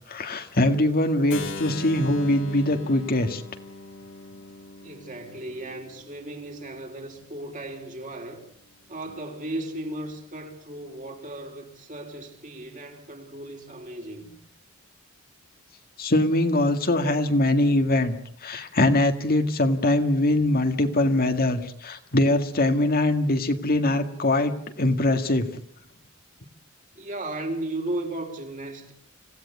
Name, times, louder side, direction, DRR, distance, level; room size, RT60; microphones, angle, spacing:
voice 1, 0.1-3.4 16.0-18.2 18.4-25.5, left 1 dB, 50° left, 1.9 m, -22 dB
Keyboard (musical), 1.3-7.1, left 3 dB, 70° left, 2.8 m, -40 dB
voice 2, 4.8-8.4 8.9-14.3 27.0-28.9, right 1 dB, 40° right, 4.2 m, -35 dB
26.5 x 16.5 x 8.4 m
head